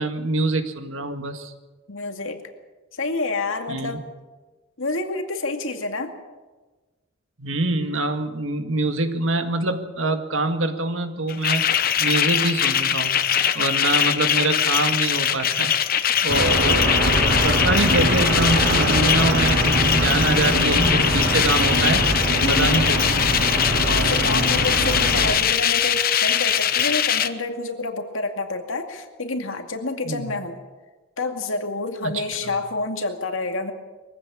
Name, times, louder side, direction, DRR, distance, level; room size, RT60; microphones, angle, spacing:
voice 1, 0.0-1.5 3.7-4.0 7.4-11.7 12.0-13.2 13.6-16.9 17.2-22.2 22.4-23.2 30.0-30.3 32.4-32.5, right 2 dB, 80° right, 7 dB, 1.9 m, -25 dB
voice 2, 1.9-2.4 2.9-4.0 4.8-6.1 22.4-22.9 23.8-30.6 31.2-33.7, left 3 dB, 85° left, 5 dB, 2.3 m, -28 dB
sound 1, 11.3-27.3, left 9 dB, 45° left, 0.9 m, -22 dB
sound 2, 16.3-25.3, right 1 dB, 65° right, 4.4 m, -22 dB
22.5 x 15.5 x 8.6 m, 1.3 s
head